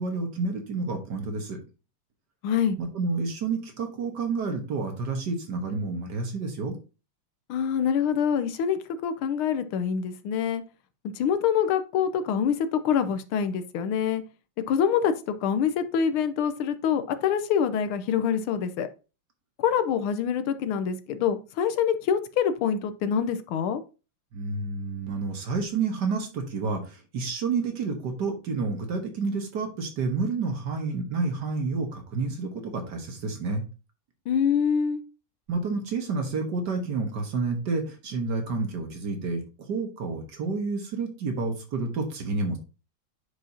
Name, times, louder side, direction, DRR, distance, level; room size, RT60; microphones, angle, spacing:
voice 1, 0.0-1.6 2.8-6.8 24.3-33.6 35.5-42.6, right 4 dB, 55° right, 5 dB, 1.7 m, -29 dB
voice 2, 2.4-2.8 7.5-10.6 11.0-14.2 14.7-18.9 19.6-23.8 34.3-35.0, left 7 dB, 80° left, 11 dB, 1.5 m, -25 dB
9.6 x 4.9 x 2.7 m, 0.32 s
omnidirectional pair, 2.4 m